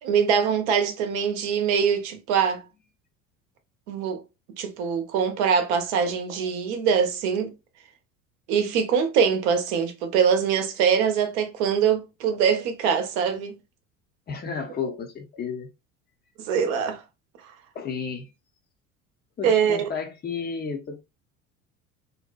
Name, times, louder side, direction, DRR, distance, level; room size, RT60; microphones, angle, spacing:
voice 1, 0.0-2.6 3.9-4.2 4.6-7.5 8.5-13.5 16.4-17.0 17.4-17.5 19.4-19.9, right 7 dB, 60° right, 0.7 m, -23 dB
voice 2, 14.3-15.7 17.7-18.3 19.4-21.0, left 5 dB, 25° left, 0.6 m, -32 dB
2.7 x 2.1 x 2.4 m
figure-of-eight pair, 65°, 39 cm